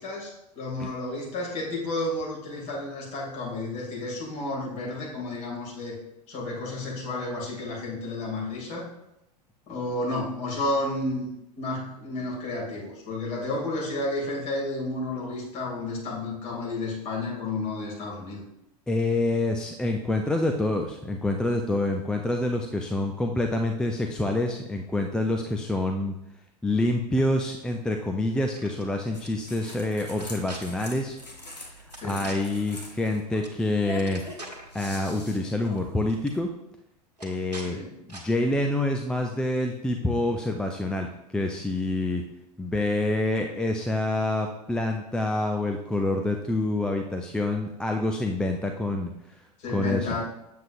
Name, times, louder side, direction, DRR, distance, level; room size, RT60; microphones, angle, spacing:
voice 1, 0.0-6.0 6.3-8.9 9.7-11.3 11.6-18.4 32.0-32.2 37.6-38.0 49.6-50.2, left 2 dB, 35° left, -3 dB, 2.6 m, -31 dB
voice 2, 18.9-26.1 26.6-31.2 31.6-31.7 32.0-34.2 34.7-36.5 37.2-37.8 38.1-42.2 42.6-49.1 49.7-50.1, left 2 dB, 5° left, 3 dB, 0.3 m, -27 dB
sound 1, 28.4-28.8 29.2-29.3 30.1-30.6 31.9-32.4 33.4-33.6 33.9-34.7 35.7-35.8 36.1-36.4 37.2-37.7 38.1-38.2, right 2 dB, 80° right, 1.3 m, -42 dB
sound 2, 29.1-36.4, left 2 dB, 80° left, 1.3 m, -43 dB
7.4 x 7.3 x 2.5 m, 0.85 s
figure-of-eight pair, 90°, 21 cm